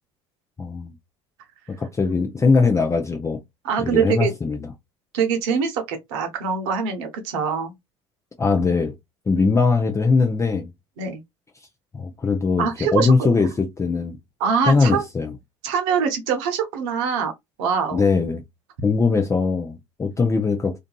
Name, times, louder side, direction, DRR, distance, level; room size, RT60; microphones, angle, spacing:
voice 1, 0.6-0.9 1.8-3.4 3.8-4.6 8.4-8.9 9.3-10.7 11.9-14.2 14.7-15.3 17.9-18.4 18.8-20.8, left 4 dB, 20° left, 0.5 m, -20 dB
voice 2, 3.6-4.3 5.1-7.7 11.0-11.2 12.6-13.3 14.4-15.0 15.6-17.3 17.6-18.0, right 6 dB, 70° right, 0.8 m, -23 dB
2.6 x 2.5 x 2.2 m
hypercardioid pair, 65°, 15 cm